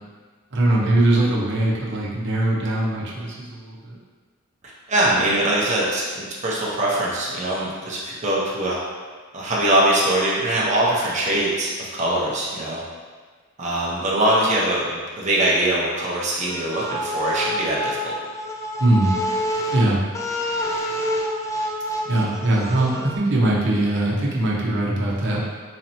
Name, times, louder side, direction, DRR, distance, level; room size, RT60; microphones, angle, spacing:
voice 1, 0.5-3.9 18.8-19.1 19.7-20.0 22.1-25.4, right 1 dB, 65° right, -4 dB, 0.8 m, -21 dB
voice 2, 4.9-8.8 9.3-12.8 13.6-18.1, right 1 dB, 35° right, -6 dB, 0.6 m, -22 dB
sound 1, 16.5-23.2, equal, 15° left, 0.3 m, -27 dB
4.0 x 2.9 x 2.7 m, 1.5 s
head